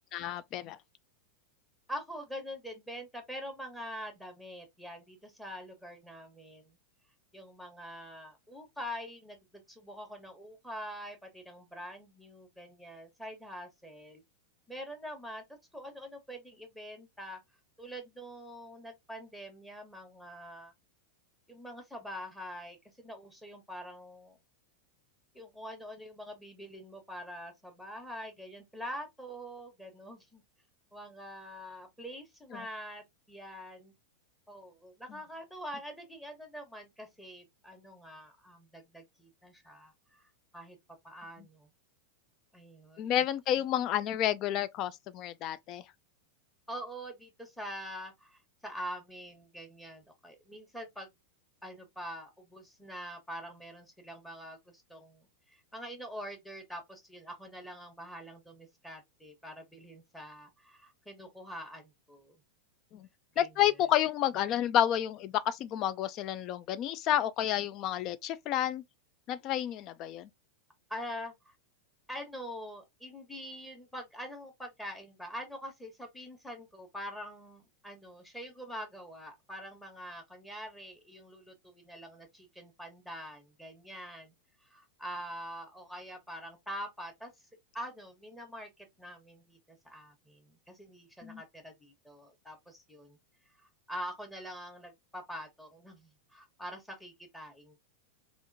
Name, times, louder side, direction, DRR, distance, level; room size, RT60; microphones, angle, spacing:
voice 1, 0.1-0.8 32.5-32.6 43.0-45.8 62.9-63.1 63.4-68.8 69.3-70.3 91.2-91.4, left 11 dB, 45° left, 0.4 m, -30 dB
voice 2, 1.9-6.8 7.3-14.2 14.7-15.4 15.7-17.4 17.8-20.7 21.5-24.4 25.3-30.4 30.9-33.9 34.5-40.8 41.0-41.7 42.5-43.1 43.5-43.6 46.7-51.1 51.6-62.4 63.3-63.5 70.9-71.5 72.1-84.3 84.6-87.5 87.7-93.2 93.6-97.8, equal, 5° left, 1.2 m, -45 dB
3.5 x 2.5 x 2.6 m
hypercardioid pair, 100°, 0 cm